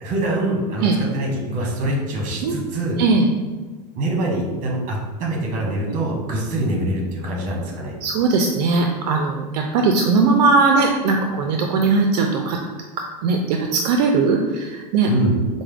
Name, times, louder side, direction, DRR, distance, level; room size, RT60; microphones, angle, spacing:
voice 1, 0.0-3.0 3.9-8.0 15.1-15.4, right 1 dB, 40° right, -1 dB, 1.1 m, -24 dB
voice 2, 8.0-12.6 13.2-15.1, right 4 dB, 70° right, 2 dB, 0.4 m, -19 dB
4.7 x 2.1 x 3.4 m, 1.3 s
supercardioid pair, 130°, 21 cm